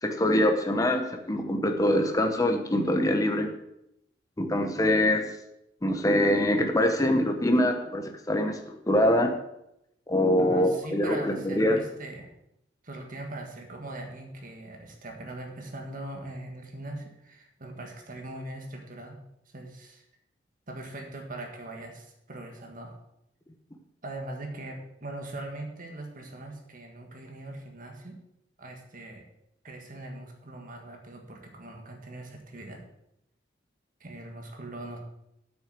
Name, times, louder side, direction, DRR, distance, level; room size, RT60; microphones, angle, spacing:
voice 1, 0.0-3.5 4.4-5.3 5.8-9.4 10.1-11.8, left 1 dB, 20° left, 4 dB, 0.9 m, -24 dB
voice 2, 10.4-12.3 12.8-19.2 19.5-20.1 20.7-23.0 24.0-28.2 28.6-29.2 29.6-32.8 34.0-35.0, right 1 dB, 50° right, 2 dB, 1.7 m, -41 dB
8.6 x 6.2 x 7.4 m, 0.81 s
head